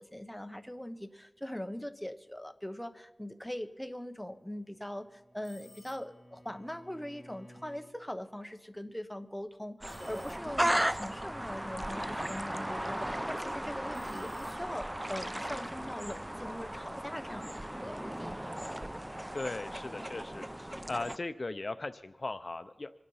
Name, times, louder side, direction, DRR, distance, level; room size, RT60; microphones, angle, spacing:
voice 1, 0.0-18.4, left 1 dB, 5° left, 8 dB, 1.0 m, -41 dB
Bowed string instrument, 4.6-8.0, equal, 35° left, 2.8 m, -57 dB
sound 1, 5.4-6.3 9.9-10.9 13.9-15.1, left 3 dB, 85° left, 2.1 m, -59 dB
sound 2, 9.8-21.2, right 1 dB, 15° right, 0.5 m, -36 dB
voice 2, 19.3-20.5 20.9-22.9, left 2 dB, 55° left, 11 dB, 0.6 m, -38 dB
25.5 x 9.6 x 5.6 m, 1.1 s
wide cardioid pair, 75°, 0 cm